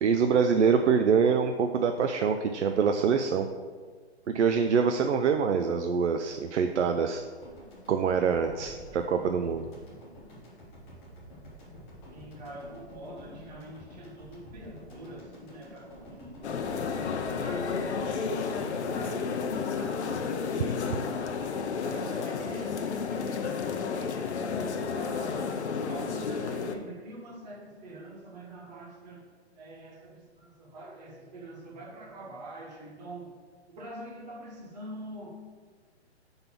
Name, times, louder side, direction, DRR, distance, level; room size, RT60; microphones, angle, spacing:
voice 1, 0.0-3.5 4.3-7.2 7.9-9.7, right 6 dB, 85° right, 6 dB, 0.6 m, -25 dB
sound 1, 7.4-19.6, equal, 5° left, 0.5 m, -49 dB
voice 2, 12.1-16.7 16.9-25.6 25.9-29.3 29.6-33.3 33.7-35.3, right 1 dB, 35° right, -1 dB, 1.4 m, -45 dB
sound 2, 16.4-26.7, left 5 dB, 75° left, 0.7 m, -32 dB
5.3 x 4.0 x 5.9 m, 1.5 s
hypercardioid pair, 160°, 34 cm